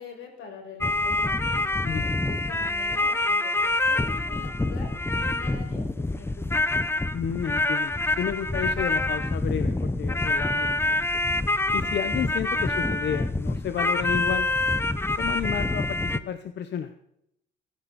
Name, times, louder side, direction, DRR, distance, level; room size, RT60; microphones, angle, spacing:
voice 1, 0.0-1.9 2.2-7.0, left 3 dB, 85° left, 1 dB, 5.8 m, -44 dB
sound 1, 0.8-16.2, left 2 dB, 10° left, 0.9 m, -26 dB
voice 2, 1.8-2.2 7.1-11.1 11.7-14.5 15.2-16.9, left 9 dB, 60° left, 10 dB, 1.0 m, -31 dB
21.0 x 10.5 x 4.3 m, 0.76 s
cardioid pair, 90°, 20 cm